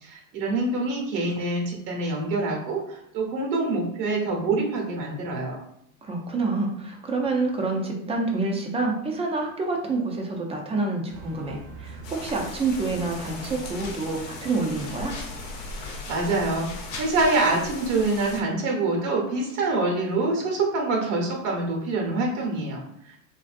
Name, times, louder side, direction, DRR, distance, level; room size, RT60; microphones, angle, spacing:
voice 1, 0.0-5.6 15.7-23.2, right 2 dB, 70° right, -1 dB, 1.1 m, -26 dB
voice 2, 6.0-15.2, right 3 dB, 15° right, 1 dB, 0.5 m, -27 dB
sound 1, 11.1-16.5, right 2 dB, 45° right, 0.8 m, -44 dB
sound 2, 12.0-18.4, left 2 dB, 75° left, 0.9 m, -38 dB
sound 3, 13.2-14.2 14.6-15.4 15.7-17.3, left 3 dB, 45° left, 1.1 m, -43 dB
3.1 x 2.6 x 2.5 m, 0.74 s
supercardioid pair, 115°, 41 cm